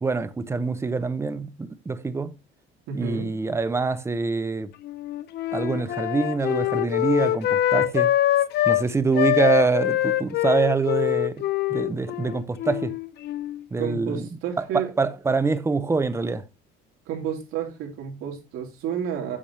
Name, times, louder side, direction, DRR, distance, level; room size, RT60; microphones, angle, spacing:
voice 1, 0.0-2.3 2.9-4.7 5.5-8.1 8.7-11.4 11.7-12.9 13.7-14.3 14.6-16.4, right 4 dB, 15° right, 0.6 m, -25 dB
voice 2, 2.9-3.3 13.8-14.9 17.1-19.4, right 8 dB, 80° right, 3.0 m, -31 dB
Wind instrument woodwind instrument, 4.8-8.8 9.1-13.6, left 13 dB, 55° left, 0.6 m, -24 dB
8.6 x 7.0 x 3.0 m
cardioid pair, 170°, 21 cm